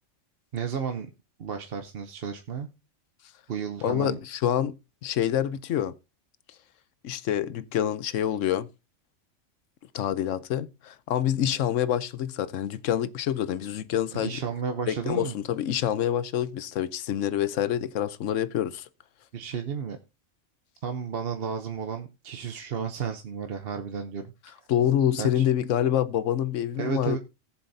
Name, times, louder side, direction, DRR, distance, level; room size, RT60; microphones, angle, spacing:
voice 1, 0.5-1.1 1.4-2.7 3.5-4.2 14.1-15.3 19.3-20.0 20.8-24.2 25.2-25.4 26.8-27.2, right 6 dB, 55° right, 1.0 m, -32 dB
voice 2, 3.8-4.7 5.0-5.9 7.0-8.7 9.9-14.4 14.9-18.8 24.7-27.2, left 10 dB, 90° left, 1.1 m, -26 dB
18.5 x 7.2 x 2.7 m
omnidirectional pair, 1.3 m